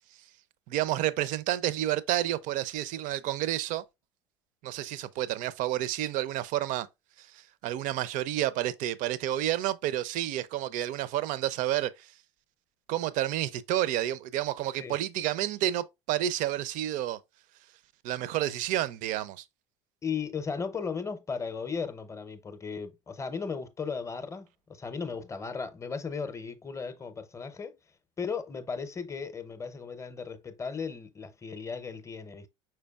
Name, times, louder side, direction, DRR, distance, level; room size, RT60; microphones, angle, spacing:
voice 1, 0.7-3.8 4.6-6.9 7.2-12.1 12.9-17.2 18.0-19.4, right 13 dB, 55° right, 0.5 m, -30 dB
voice 2, 20.0-27.7 28.2-32.5, left 5 dB, 20° left, 0.6 m, -36 dB
5.0 x 4.4 x 2.3 m
supercardioid pair, 95°, 16 cm